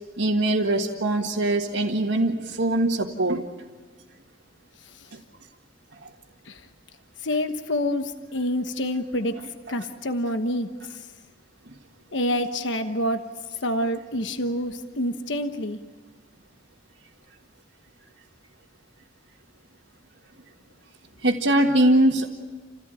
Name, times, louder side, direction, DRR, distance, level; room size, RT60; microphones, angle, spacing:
voice 1, 0.2-3.4 6.0-6.1 21.2-22.3, right 1 dB, 75° right, -1 dB, 1.7 m, -22 dB
voice 2, 7.2-9.4 9.7-11.0 12.1-13.3 13.6-15.8, left 1 dB, 75° left, 7 dB, 1.2 m, -27 dB
29.0 x 16.5 x 9.2 m, 1.3 s
head